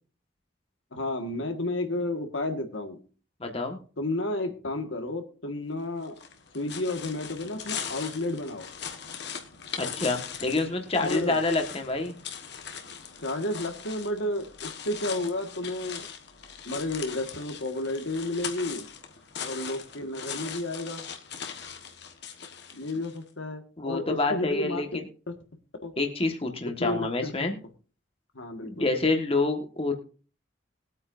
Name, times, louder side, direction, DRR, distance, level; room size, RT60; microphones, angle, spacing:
voice 1, 0.9-3.0 4.0-6.2 6.5-8.7 11.0-11.4 13.2-16.1 16.7-18.9 19.4-21.0 22.7-24.8 25.3-25.4 25.8-25.9 26.8-27.3 28.4-28.9, left 2 dB, 90° left, 5 dB, 1.7 m, -32 dB
voice 2, 3.4-3.8 9.8-12.2 23.8-25.1 26.0-27.6 28.6-29.9, left 3 dB, 30° left, 4 dB, 1.5 m, -27 dB
sound 1, 6.0-23.2, left 7 dB, 60° left, 1.3 m, -40 dB
21.0 x 8.6 x 2.6 m, 0.38 s
head